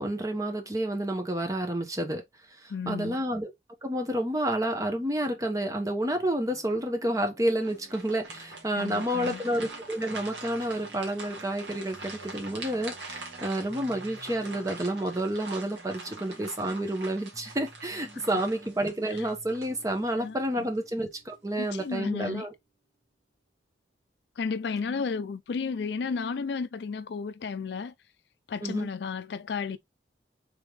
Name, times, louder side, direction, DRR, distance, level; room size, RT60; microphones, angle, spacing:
voice 1, 0.0-2.2 2.6-3.5 3.8-22.5 28.6-28.9, right 1 dB, 20° right, 0.9 m, -30 dB
voice 2, 2.7-3.2 8.7-9.4 18.1-18.2 19.1-19.3 20.2-20.7 21.6-22.5 24.4-27.9 28.5-29.8, left 5 dB, 70° left, 0.4 m, -33 dB
sound 1, 6.1-22.4, right 1 dB, ahead, 1.1 m, -54 dB
sound 2, 7.6-20.3 20.7-20.9 21.5-22.0, right 3 dB, 80° right, 1.5 m, -43 dB
3.6 x 3.4 x 3.2 m
head